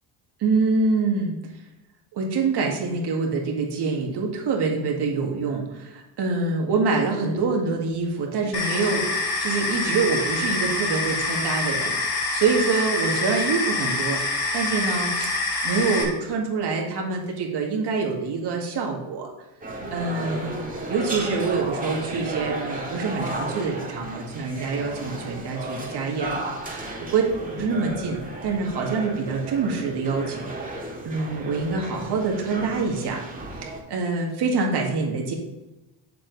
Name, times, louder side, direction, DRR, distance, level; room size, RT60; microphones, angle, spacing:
voice 1, 0.4-1.4 2.1-15.3 15.6-19.3 19.9-20.6 20.9-27.2 27.6-33.2 33.5-35.3, right 4 dB, 55° right, 0 dB, 2.0 m, -26 dB
sound 1, 8.5-16.0, left 3 dB, 55° left, 2.8 m, -26 dB
sound 2, 19.6-33.8, right 2 dB, 15° right, 2.0 m, -34 dB
7.4 x 7.4 x 4.0 m, 1.0 s
supercardioid pair, 80°, 49 cm